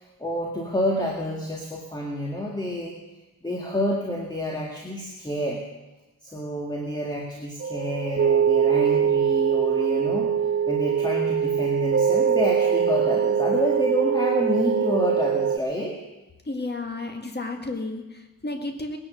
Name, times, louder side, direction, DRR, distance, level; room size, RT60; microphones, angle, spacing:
voice 1, 0.0-2.9 3.4-5.6 6.2-10.3 10.7-16.0, equal, 10° left, -2 dB, 1.9 m, -28 dB
sound 1, 7.6-15.6, right 7 dB, 35° right, 0.5 m, -22 dB
voice 2, 16.5-19.0, left 2 dB, 25° left, 4 dB, 1.9 m, -32 dB
19.0 x 10.0 x 6.4 m, 1.1 s
wide cardioid pair, 130°, 37 cm